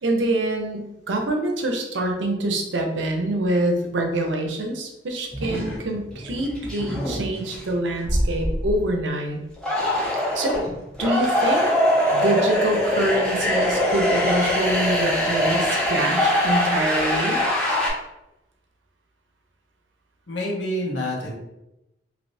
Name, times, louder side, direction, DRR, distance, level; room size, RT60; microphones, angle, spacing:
voice 1, 0.0-9.4 10.3-10.6 11.0-11.7 12.1-17.4, right 1 dB, 85° right, 2 dB, 0.6 m, -25 dB
sound 1, 5.3-5.8 6.1-7.6 8.0-9.0 9.6-17.9, equal, 5° left, 0.9 m, -22 dB
voice 2, 20.3-21.4, equal, 80° left, -3 dB, 1.0 m, -27 dB
3.2 x 2.8 x 2.6 m, 0.92 s
head